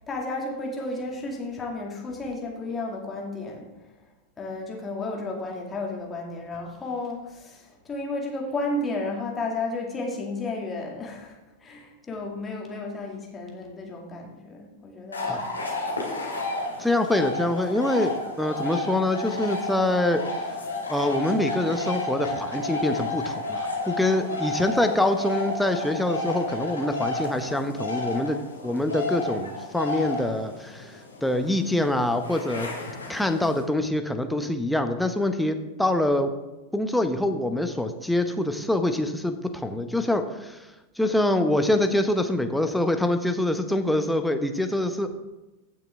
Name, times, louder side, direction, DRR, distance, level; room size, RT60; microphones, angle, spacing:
voice 1, 0.1-3.7 4.4-15.4, left 2 dB, 20° left, -1 dB, 2.2 m, -33 dB
sound 1, 15.1-33.6, left 2 dB, 80° left, 2.2 m, -32 dB
voice 2, 16.8-20.2 20.9-30.9 31.2-32.7 33.1-36.3 36.7-40.6 41.0-45.1, left 1 dB, ahead, 6 dB, 0.9 m, -25 dB
16.0 x 6.0 x 3.6 m, 1.0 s
figure-of-eight pair, 90°, 0 cm